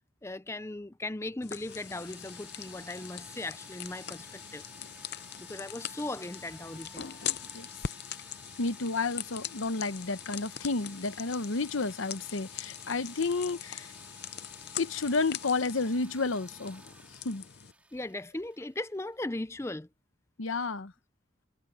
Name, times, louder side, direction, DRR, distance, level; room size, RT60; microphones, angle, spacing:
voice 1, 0.2-4.6 5.4-7.1 17.9-19.9, left 2 dB, 15° left, 0.5 m, -38 dB
sound 1, 1.4-17.7, left 10 dB, 55° left, 0.7 m, -42 dB
sound 2, 1.7-19.4, right 2 dB, 5° right, 2.0 m, -54 dB
voice 2, 8.6-13.9 14.8-16.8 17.1-17.4 20.4-20.9, left 3 dB, 80° left, 0.9 m, -31 dB
head